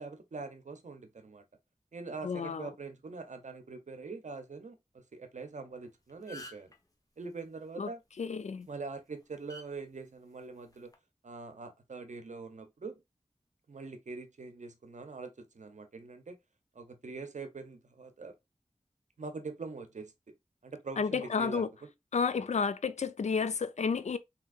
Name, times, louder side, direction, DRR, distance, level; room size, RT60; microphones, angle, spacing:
voice 1, 0.0-1.4 1.9-6.7 7.2-8.0 8.7-10.9 11.2-13.0 13.7-16.4 16.7-18.4 19.2-20.3 20.6-21.9, right 4 dB, 80° right, 0.7 m, -43 dB
voice 2, 2.2-2.7 7.8-7.9 8.2-8.7 21.0-21.7 22.1-24.2, left 5 dB, 70° left, 0.4 m, -31 dB
sound 1, 5.7-5.8 6.1-6.8 8.4-8.6 9.5-9.7 10.7-10.9, equal, 30° left, 0.9 m, -47 dB
3.5 x 2.8 x 2.4 m
wide cardioid pair, 40°, 12 cm